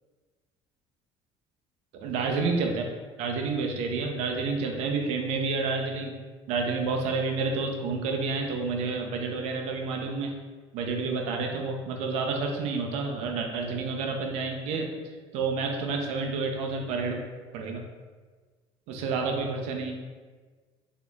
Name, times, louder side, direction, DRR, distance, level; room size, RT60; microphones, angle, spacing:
voice 1, 1.9-2.8 3.2-6.1 6.5-10.4 10.7-15.0 15.3-17.2 17.5-17.8 18.9-19.9, right 4 dB, 75° right, 2 dB, 0.6 m, -29 dB
4.2 x 2.8 x 2.3 m, 1.4 s
cardioid pair, 135°, 11 cm